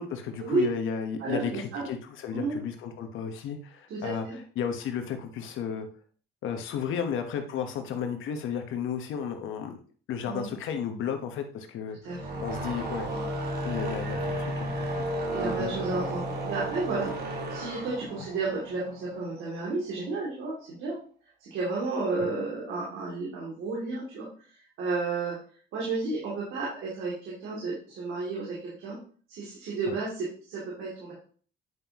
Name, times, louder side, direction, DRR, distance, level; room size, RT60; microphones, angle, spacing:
voice 1, 0.0-5.9 6.4-9.8 10.1-12.1 12.4-13.1 13.6-15.0 15.4-15.9 22.2-22.3 29.9-30.0, left 7 dB, 80° left, 6 dB, 1.2 m, -33 dB
voice 2, 1.2-1.9 2.3-2.6 3.9-4.4 10.3-10.5 12.0-12.4 13.1-13.2 15.3-21.0 21.4-24.3 24.8-25.3 25.7-29.0 29.3-31.1, right 3 dB, 85° right, -6 dB, 2.8 m, -32 dB
sound 1, 12.0-19.4, right 1 dB, 50° right, 2.1 m, -33 dB
9.4 x 5.5 x 3.0 m, 0.43 s
cardioid pair, 90°, 20 cm